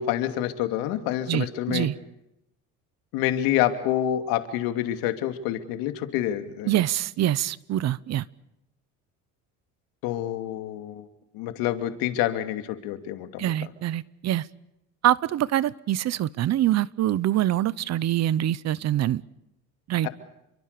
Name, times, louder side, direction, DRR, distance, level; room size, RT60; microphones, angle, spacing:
voice 1, 0.0-1.9 3.1-6.7 10.0-11.1 11.3-13.5 20.0-20.1, left 12 dB, 90° left, 8 dB, 2.8 m, -27 dB
voice 2, 1.3-1.9 6.7-8.2 13.4-14.5 15.0-19.2 19.9-20.1, right 13 dB, 50° right, 20 dB, 0.9 m, -25 dB
29.0 x 23.5 x 6.8 m, 0.83 s
cardioid pair, 125°, 34 cm